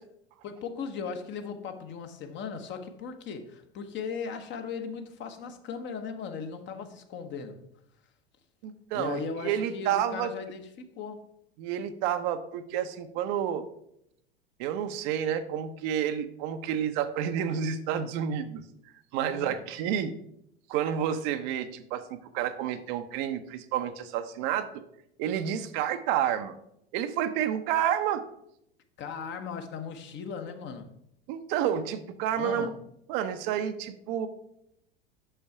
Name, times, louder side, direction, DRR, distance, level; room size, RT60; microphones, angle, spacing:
voice 1, 0.4-7.6 8.9-11.2 19.2-19.6 29.0-30.9 32.3-32.7, left 5 dB, 35° left, 1.0 m, -37 dB
voice 2, 8.6-10.3 11.6-13.6 14.6-18.6 19.1-20.1 20.7-24.8 25.2-26.5 26.9-28.2 31.3-32.7 33.1-34.3, right 9 dB, 50° right, 0.7 m, -30 dB
6.3 x 5.6 x 4.7 m
figure-of-eight pair, 80°, 31 cm